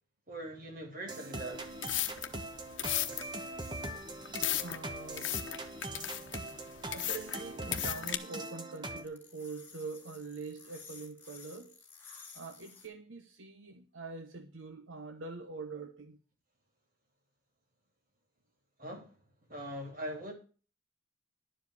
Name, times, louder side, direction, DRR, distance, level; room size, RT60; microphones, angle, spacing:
voice 1, 0.3-1.7 18.8-19.2 19.5-20.3, right 1 dB, 45° right, 3.3 m, -41 dB
sound 1, 1.1-9.0, right 1 dB, 20° right, 1.1 m, -42 dB
sound 2, 1.5-8.2, left 12 dB, 75° left, 1.0 m, -36 dB
voice 2, 4.6-5.4 6.9-11.7 12.3-16.2, right 4 dB, 80° right, 1.0 m, -44 dB
sound 3, 7.6-12.9, left 5 dB, 10° left, 2.4 m, -54 dB
11.5 x 5.0 x 8.0 m
head